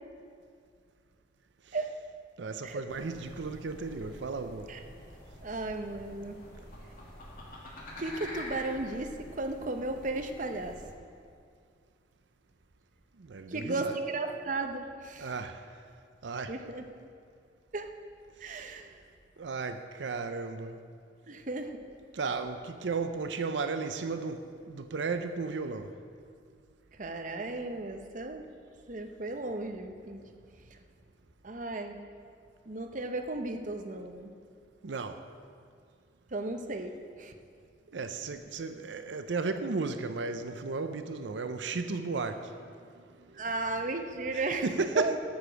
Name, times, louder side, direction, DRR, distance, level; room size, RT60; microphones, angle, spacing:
voice 1, 2.4-4.7 13.2-13.9 15.2-15.6 16.2-16.6 18.4-18.8 19.4-20.8 22.1-25.9 34.8-35.2 37.9-42.5 43.3-43.4 44.6-45.2, right 4 dB, 85° right, 0.6 m, -34 dB
sound 1, 2.9-10.9, left 1 dB, 50° left, 2.3 m, -47 dB
voice 2, 5.4-6.4 8.0-10.8 13.5-15.3 16.5-16.8 17.7-17.9 18.4-19.0 21.3-21.8 27.0-28.5 28.9-30.2 30.7-30.8 31.4-32.1 32.7-34.3 36.3-37.3 43.3-45.2, right 2 dB, 45° right, 0.8 m, -35 dB
13.0 x 7.0 x 6.3 m
head